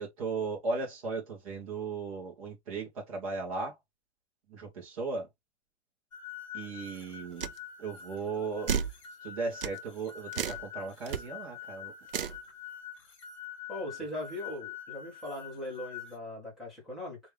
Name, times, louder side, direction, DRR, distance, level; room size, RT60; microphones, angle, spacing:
voice 1, 0.0-3.7 4.5-5.3 6.5-7.5 7.8-8.8 9.2-11.9, right 4 dB, 30° right, 1.7 m, -36 dB
sound 1, 6.1-16.1, left 9 dB, 25° left, 0.6 m, -45 dB
sound 2, 7.4-7.6 8.7-9.0 9.6-9.8 10.3-10.6 11.1-11.2 12.1-12.4, right 8 dB, 50° right, 0.6 m, -32 dB
voice 2, 13.7-17.2, left 1 dB, ahead, 1.0 m, -39 dB
3.4 x 3.3 x 3.4 m
hypercardioid pair, 175°, 35 cm